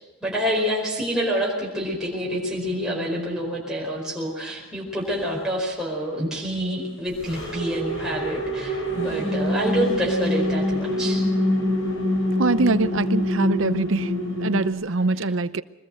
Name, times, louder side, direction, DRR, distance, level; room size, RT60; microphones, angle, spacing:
voice 1, 0.2-11.2, equal, 5° right, 4.9 m, -27 dB
sound 1, 2.2-4.0 7.1-14.7, left 1 dB, 70° left, 7.0 m, -26 dB
voice 2, 12.4-15.6, right 3 dB, 70° right, 0.7 m, -23 dB
23.0 x 21.0 x 6.5 m
head